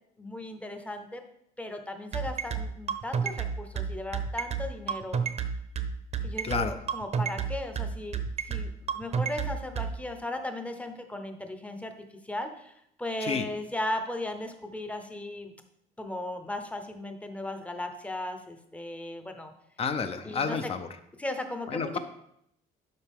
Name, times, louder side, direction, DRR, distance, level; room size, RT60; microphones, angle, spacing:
voice 1, 0.2-1.2 1.6-5.2 6.2-11.9 12.2-12.7 13.0-15.5 16.0-19.5 20.2-20.7 21.2-22.0, left 1 dB, 10° left, 6 dB, 0.8 m, -36 dB
sound 1, 2.1-9.9, right 7 dB, 40° right, 0.7 m, -30 dB
voice 2, 6.4-6.8 13.2-13.4 19.8-20.9 21.7-22.0, left 5 dB, 35° left, 9 dB, 0.7 m, -30 dB
12.0 x 4.9 x 3.6 m, 0.75 s
cardioid pair, 130°, 17 cm